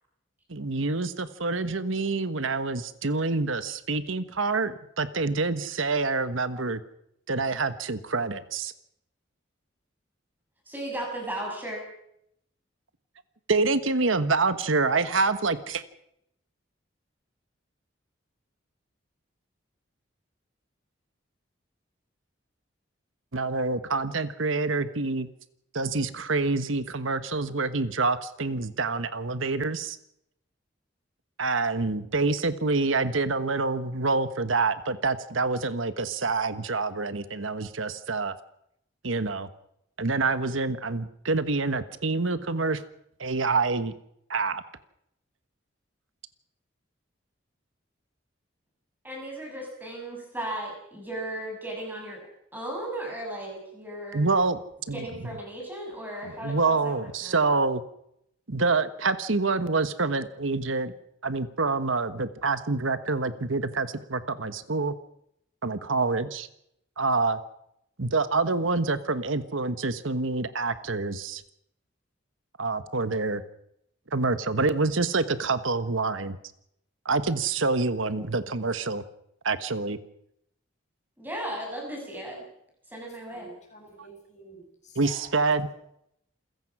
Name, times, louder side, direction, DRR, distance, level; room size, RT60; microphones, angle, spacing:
voice 1, 0.5-6.8 7.3-8.7 13.5-15.8 23.3-25.3 25.7-30.0 31.4-38.3 39.0-39.5 40.0-42.8 43.2-43.9 44.3-44.6 54.1-54.6 54.9-55.0 56.4-57.8 58.5-60.9 61.2-64.9 65.6-66.5 67.0-67.4 68.0-71.4 72.6-73.4 74.1-76.4 77.0-79.0 79.4-80.0 85.0-85.7, right 3 dB, 85° right, 12 dB, 1.3 m, -27 dB
voice 2, 10.7-11.8 49.0-52.2 52.5-54.3 54.9-57.4 81.2-82.4 82.9-83.5, right 1 dB, 10° right, -1 dB, 7.3 m, -36 dB
voice 3, 83.3-85.4, right 1 dB, 35° left, 2 dB, 7.4 m, -48 dB
28.0 x 16.0 x 6.2 m, 0.75 s
head